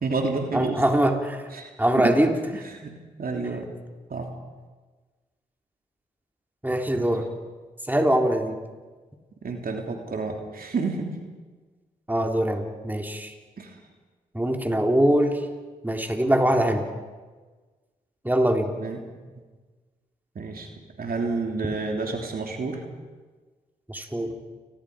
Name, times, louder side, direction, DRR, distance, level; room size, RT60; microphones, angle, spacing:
voice 1, 0.0-0.8 1.5-2.1 2.6-3.7 4.1-4.3 7.0-7.1 9.4-11.2 13.6-13.8 18.8-19.1 20.3-20.7 21.0-22.8, right 4 dB, 60° right, 2 dB, 3.2 m, -30 dB
voice 2, 0.5-1.5 1.8-2.4 6.6-7.3 7.9-8.6 12.1-13.3 14.3-15.4 15.8-16.8 18.2-18.7 23.9-24.3, right 1 dB, 10° right, 3 dB, 3.6 m, -22 dB
29.5 x 21.0 x 5.1 m, 1.3 s
supercardioid pair, 40°, 17 cm